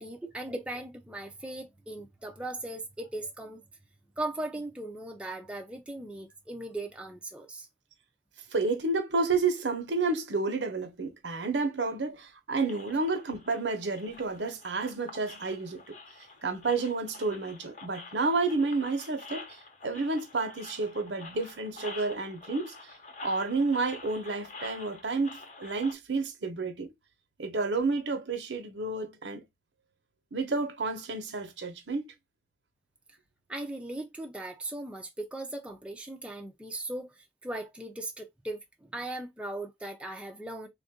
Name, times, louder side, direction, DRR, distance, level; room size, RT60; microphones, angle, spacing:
voice 1, 0.0-3.6 4.2-7.7 33.5-40.7, right 1 dB, 5° right, 0.5 m, -38 dB
voice 2, 8.5-15.9 16.4-22.7 23.2-26.9 27.4-29.4 30.3-32.1, right 3 dB, 85° right, 0.9 m, -30 dB
sound 1, 12.6-25.9, left 3 dB, 40° left, 0.8 m, -48 dB
3.6 x 2.5 x 3.6 m
head